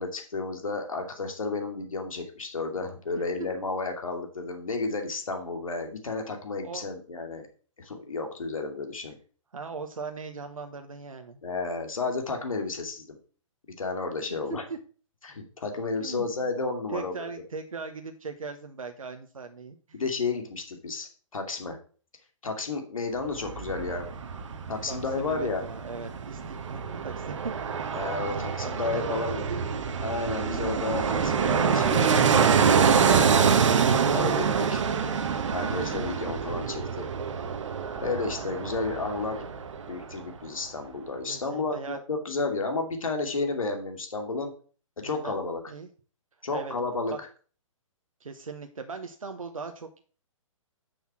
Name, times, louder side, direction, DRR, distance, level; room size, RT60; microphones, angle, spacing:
voice 1, 0.0-7.5 7.8-9.2 11.4-13.2 13.8-14.6 15.2-17.2 19.9-21.8 22.4-24.1 24.7-25.6 27.9-29.4 30.0-32.3 33.1-33.7 34.1-34.8 35.5-37.1 38.0-39.5 39.9-44.5 45.0-45.6 46.4-47.1, left 3 dB, 80° left, 4 dB, 2.6 m, -32 dB
voice 2, 9.5-11.4 14.5-14.6 16.0-16.3 16.9-20.0 24.9-27.6 28.2-29.9 38.6-38.7 41.3-42.0 45.0-45.4 45.7-45.9 46.5-46.7 47.1-47.2 48.2-50.0, right 4 dB, 85° right, 6 dB, 1.1 m, -39 dB
Fixed-wing aircraft airplane, 23.2-40.1 40.4-40.5, right 6 dB, 65° right, 1.2 m, -26 dB
6.8 x 6.0 x 6.0 m, 0.40 s
hypercardioid pair, 140°, 17 cm